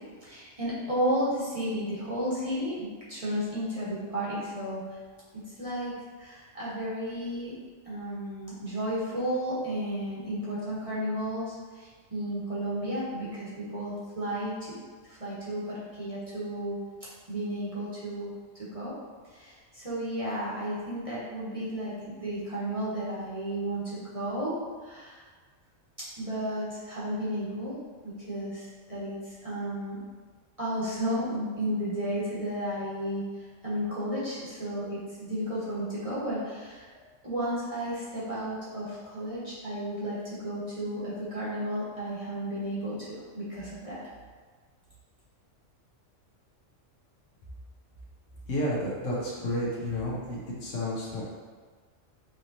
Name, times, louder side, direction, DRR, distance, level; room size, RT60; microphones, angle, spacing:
voice 1, 0.2-4.8 5.6-5.9 6.2-7.5 7.8-14.8 15.1-16.8 17.3-18.3 18.7-18.9 19.3-24.6 24.8-25.2 26.2-27.8 28.0-30.0 30.6-33.2 33.6-36.9 37.2-44.0, equal, 30° right, -9 dB, 1.0 m, -33 dB
voice 2, 48.5-51.2, left 1 dB, 70° left, -5 dB, 1.3 m, -31 dB
5.2 x 3.0 x 2.7 m, 1.5 s
omnidirectional pair, 1.4 m